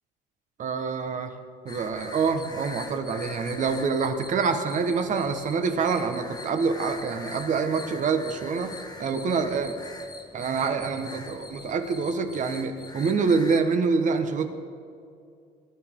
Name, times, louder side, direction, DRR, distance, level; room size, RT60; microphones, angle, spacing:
voice 1, 0.6-1.3 1.6-8.7 9.0-9.7 10.3-14.5, right 5 dB, 50° right, 7 dB, 1.3 m, -26 dB
sound 1, 1.7-13.6, left 3 dB, 25° left, 1.2 m, -43 dB
19.5 x 12.0 x 3.8 m, 2.4 s
cardioid pair, 110°, 17 cm